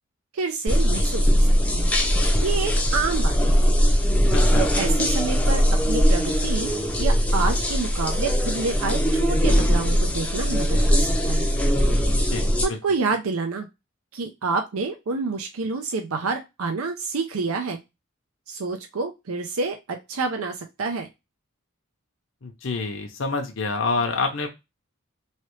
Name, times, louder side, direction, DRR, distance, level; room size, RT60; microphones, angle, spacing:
voice 1, 0.3-2.0 2.4-3.6 4.6-6.7 7.0-11.5 12.6-13.7 14.1-17.8 18.5-21.1, right 4 dB, 85° right, 5 dB, 0.5 m, -28 dB
sound 1, 0.7-12.7, equal, 5° left, 0.5 m, -20 dB
voice 2, 4.3-4.7 12.3-12.4 12.7-12.8 22.4-24.5, left 3 dB, 60° left, 3 dB, 0.6 m, -27 dB
3.2 x 2.8 x 3.0 m, 0.23 s
head